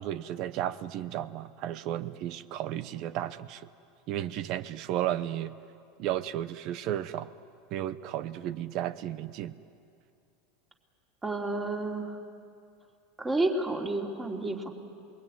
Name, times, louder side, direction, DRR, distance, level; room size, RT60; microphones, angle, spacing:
voice 1, 0.0-3.7 4.1-5.6 6.0-7.3 7.7-9.5, right 12 dB, 45° right, 14 dB, 0.9 m, -33 dB
voice 2, 11.2-12.2 13.2-14.7, right 2 dB, 15° right, 0 dB, 3.0 m, -30 dB
28.5 x 22.0 x 9.4 m, 2.4 s
supercardioid pair, 150°, 0 cm